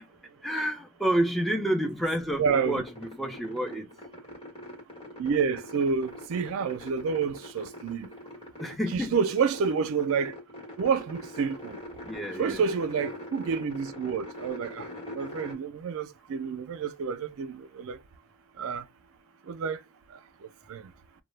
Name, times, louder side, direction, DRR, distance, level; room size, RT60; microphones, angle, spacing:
voice 1, 0.4-3.9 8.6-9.2 12.0-12.6, right 1 dB, ahead, 0.5 m, -29 dB
voice 2, 2.4-2.8 5.2-8.1 8.9-10.3 10.8-11.8 12.4-14.8 15.2-18.0 18.6-18.8 19.5-19.8 20.7-20.8, right 6 dB, 65° right, 0.4 m, -28 dB
sound 1, 2.9-15.5, left 1 dB, 25° left, 1.0 m, -43 dB
2.2 x 2.0 x 3.1 m
head